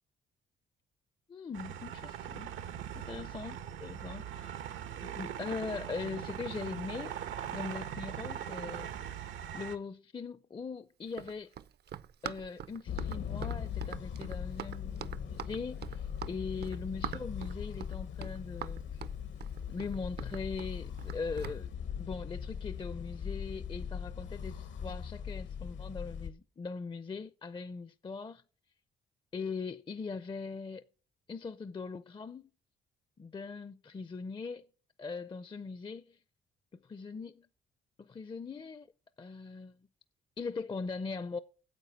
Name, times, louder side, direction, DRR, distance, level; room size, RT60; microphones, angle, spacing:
voice 1, 1.3-2.5 2.9-4.7 5.0-7.2 7.5-9.1 9.5-11.5 12.2-19.0 19.7-21.7 22.0-28.4 29.3-30.8 31.3-32.5 33.2-34.7 35.0-36.2 36.7-37.5 38.0-38.9 39.2-39.8 40.4-41.4, left 4 dB, 25° left, 0.6 m, -41 dB
sound 1, 1.5-9.8, right 9 dB, 80° right, 1.1 m, -41 dB
Run, 11.1-21.6, right 9 dB, 55° right, 0.6 m, -44 dB
sound 2, 12.9-26.3, left 8 dB, 70° left, 1.2 m, -40 dB
9.4 x 7.9 x 7.0 m
cardioid pair, 90°, 20 cm